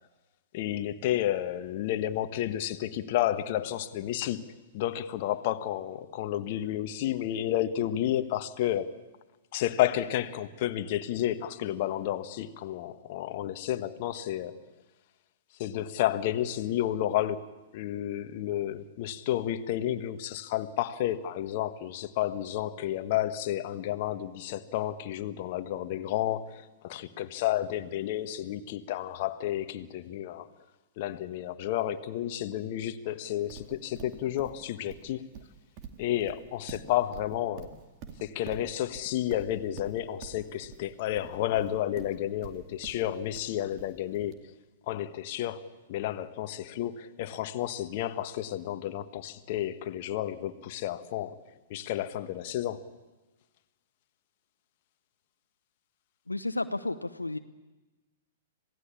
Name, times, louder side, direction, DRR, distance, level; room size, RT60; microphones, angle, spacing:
voice 1, 0.5-4.4 4.7-8.9 9.5-14.6 15.6-17.4 17.7-30.5 31.0-35.2 36.0-37.7 38.2-44.4 44.9-51.4 51.7-52.8, left 12 dB, 45° left, 9 dB, 1.3 m, -31 dB
Livestock farm animals working animals, 33.5-44.3, right 7 dB, 40° right, 2.4 m, -46 dB
voice 2, 56.3-57.4, left 2 dB, 90° left, 9 dB, 0.9 m, -32 dB
26.5 x 17.5 x 8.5 m, 1.2 s
figure-of-eight pair, 110°, 0 cm